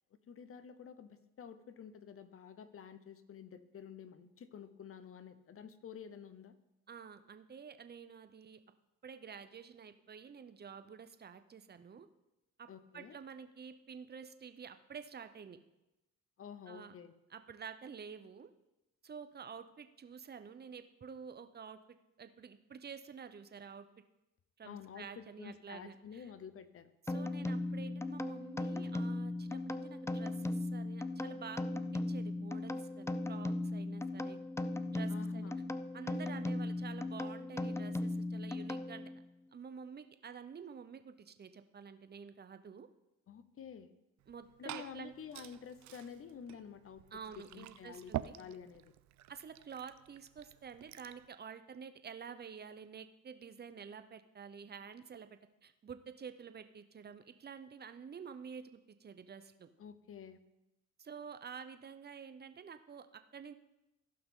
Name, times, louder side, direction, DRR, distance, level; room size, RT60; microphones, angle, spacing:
voice 1, 0.3-6.5 12.7-13.2 16.4-17.1 24.6-26.9 35.1-35.6 43.3-43.9 44.6-47.0 47.4-48.1 48.4-48.9 59.8-60.4, left 7 dB, 45° left, 13 dB, 0.8 m, -50 dB
voice 2, 6.9-8.6 9.0-12.1 12.6-12.7 12.9-15.6 16.7-16.9 17.3-18.5 19.0-21.8 22.2-23.8 24.6-26.3 27.1-34.4 34.9-35.5 35.9-39.1 39.5-42.9 44.3-45.1 47.1-48.4 49.3-55.3 55.6-59.7 61.0-63.5, right 6 dB, 35° right, 10 dB, 0.8 m, -49 dB
sound 1, 27.1-39.2, left 2 dB, 10° left, 0.4 m, -38 dB
Liquid, 44.2-51.3, right 14 dB, 70° right, 0.5 m, -48 dB
15.5 x 5.8 x 3.8 m, 0.94 s
cardioid pair, 90°, 30 cm